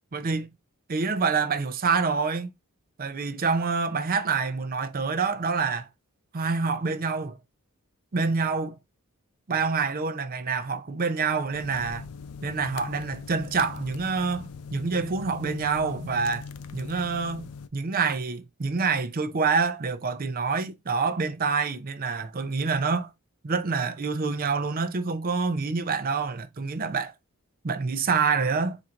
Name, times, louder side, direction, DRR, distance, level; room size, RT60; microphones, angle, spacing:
voice 1, 0.1-0.5 0.9-2.5 3.0-5.9 6.3-7.4 8.1-8.8 9.5-12.1 12.4-16.5 16.7-23.1 23.4-27.1 27.6-28.8, right 4 dB, 40° right, 0.5 m, -27 dB
sound 1, 11.5-17.7, left 5 dB, 90° left, 0.4 m, -41 dB
4.4 x 2.7 x 3.6 m
head